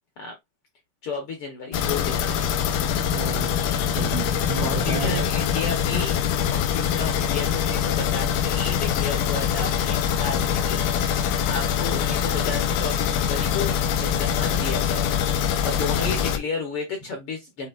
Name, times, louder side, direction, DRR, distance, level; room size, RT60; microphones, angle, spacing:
voice 1, 1.0-2.5 4.6-6.2 6.5-11.2 11.4-17.7, left 4 dB, 65° left, 1.4 m, -32 dB
sound 1, 1.7-16.4, left 8 dB, 85° left, 2.2 m, -24 dB
voice 2, 3.1-5.3 16.0-16.2, right 7 dB, 75° right, 1.4 m, -33 dB
7.1 x 2.8 x 2.4 m
omnidirectional pair, 3.7 m